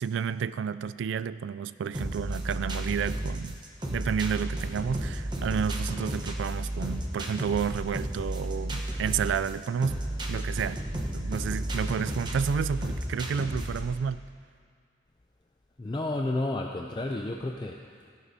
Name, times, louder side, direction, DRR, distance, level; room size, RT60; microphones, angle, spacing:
voice 1, 0.0-3.6 3.9-10.0 10.3-14.2, right 7 dB, 85° right, 0.3 m, -31 dB
sound 1, 1.9-14.0, right 1 dB, 25° right, 0.9 m, -33 dB
voice 2, 15.8-18.1, left 2 dB, 25° left, 0.4 m, -31 dB
16.0 x 11.0 x 2.7 m
head